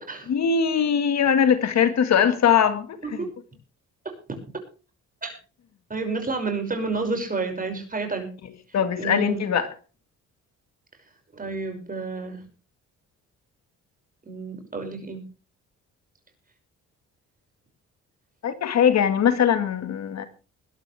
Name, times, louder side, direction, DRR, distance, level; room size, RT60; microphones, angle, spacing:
voice 1, 0.3-3.0 8.7-9.7 18.4-20.2, left 8 dB, 60° left, 1.8 m, -21 dB
voice 2, 4.0-4.4 5.2-5.3 5.9-8.3 9.0-9.4 11.3-12.4 14.3-15.2, right 4 dB, 30° right, 6.1 m, -30 dB
21.5 x 12.0 x 3.4 m
cardioid pair, 90°, 30 cm